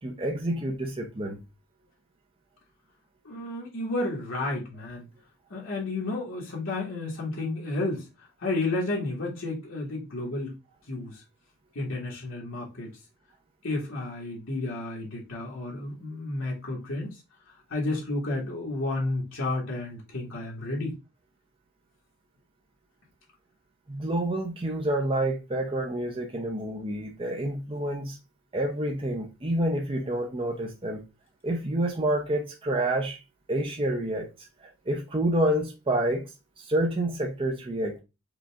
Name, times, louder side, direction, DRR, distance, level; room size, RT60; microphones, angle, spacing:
voice 1, 0.0-1.4 23.9-28.2 28.5-31.0 31.4-33.2 33.5-37.9, right 1 dB, 25° right, 0.6 m, -28 dB
voice 2, 3.2-5.1 5.5-8.1 8.4-10.5 10.9-11.2 11.7-12.9 13.6-17.2 17.7-20.9, left 2 dB, 70° left, 1.5 m, -31 dB
5.1 x 2.4 x 3.3 m
head